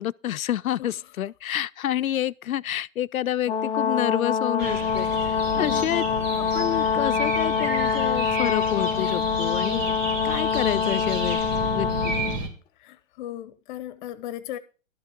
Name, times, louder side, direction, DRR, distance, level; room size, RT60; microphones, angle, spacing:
voice 1, 0.0-6.0 6.4-9.9 10.2-12.3, left 12 dB, 90° left, 0.6 m, -28 dB
Brass instrument, 3.5-12.4, left 7 dB, 10° left, 0.5 m, -25 dB
sound 1, 4.6-12.5, right 2 dB, 70° right, 3.7 m, -32 dB
voice 2, 5.5-6.0 12.8-14.6, left 13 dB, 35° left, 0.8 m, -37 dB
12.5 x 6.6 x 6.0 m
hypercardioid pair, 130°, 40 cm